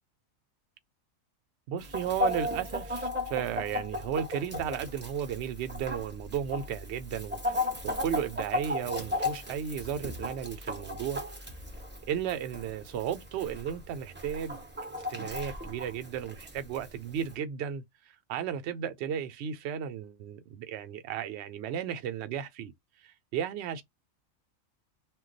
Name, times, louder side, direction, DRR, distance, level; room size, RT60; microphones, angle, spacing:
voice 1, 1.7-11.5 12.1-14.6 15.1-17.8 18.3-22.7 23.0-23.8, right 9 dB, 65° right, 0.7 m, -34 dB
Chicken rooster, 1.8-17.3, left 2 dB, 15° right, 0.3 m, -36 dB
2.3 x 2.2 x 3.7 m
omnidirectional pair, 1.4 m